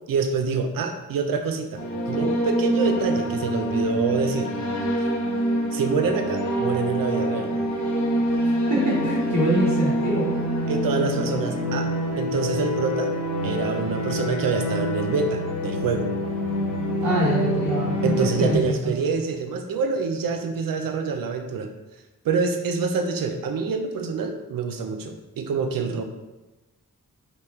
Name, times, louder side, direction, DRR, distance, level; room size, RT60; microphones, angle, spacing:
voice 1, 0.1-4.5 5.7-7.5 10.7-11.9 12.2-13.1 13.4-16.1 18.0-21.7 22.2-26.0, right 4 dB, 90° right, 6 dB, 0.6 m, -26 dB
sound 1, 1.8-18.6, equal, 60° left, 1.2 m, -26 dB
voice 2, 8.7-10.3 17.0-18.1 18.4-18.9, right 1 dB, 55° right, -10 dB, 1.3 m, -24 dB
5.3 x 2.9 x 3.2 m, 1.1 s
wide cardioid pair, 115°, 33 cm